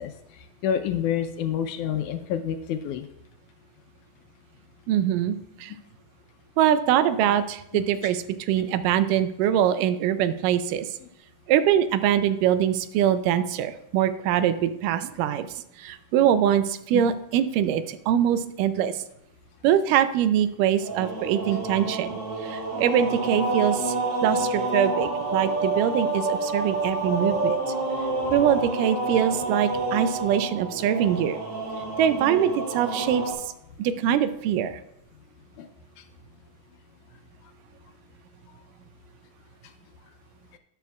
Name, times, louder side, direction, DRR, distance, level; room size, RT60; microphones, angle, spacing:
voice 1, 0.0-3.1 7.7-7.8 16.9-17.0 35.6-35.7, left 9 dB, 80° left, 8 dB, 2.0 m, -28 dB
voice 2, 4.9-5.7 6.6-10.9 11.5-15.5 15.8-19.0 19.6-24.0 24.2-27.6 28.3-31.4 32.0-33.4 33.8-34.8, right 10 dB, 85° right, 12 dB, 2.1 m, -23 dB
sound 1, 20.8-33.3, right 2 dB, 45° right, 3.4 m, -28 dB
12.5 x 9.2 x 2.3 m, 0.79 s
omnidirectional pair, 3.8 m